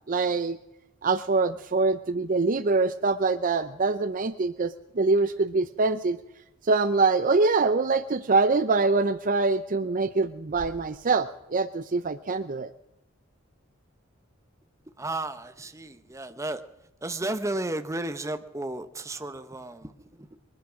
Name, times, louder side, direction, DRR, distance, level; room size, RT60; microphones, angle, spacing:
voice 1, 0.1-0.6 1.0-6.2 6.6-12.7, right 3 dB, 40° right, 0.5 m, -24 dB
voice 2, 15.0-16.6 17.0-20.4, right 2 dB, 15° right, 0.9 m, -33 dB
22.0 x 10.5 x 6.2 m
head